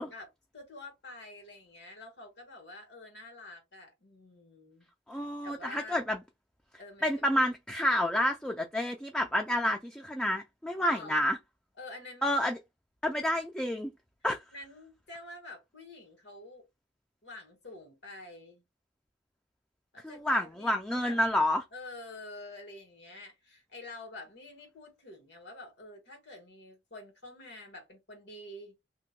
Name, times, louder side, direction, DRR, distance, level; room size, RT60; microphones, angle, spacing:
voice 1, 0.0-6.0 6.8-7.4 10.9-11.3 11.8-12.4 14.5-16.6 17.2-18.6 19.9-21.2 21.7-28.7, left 2 dB, 80° left, 1.5 m, -48 dB
voice 2, 5.1-6.2 7.0-11.4 12.2-12.6 13.0-13.9 14.2-14.4 20.0-21.6, left 1 dB, 5° left, 0.3 m, -29 dB
2.7 x 2.1 x 3.7 m
head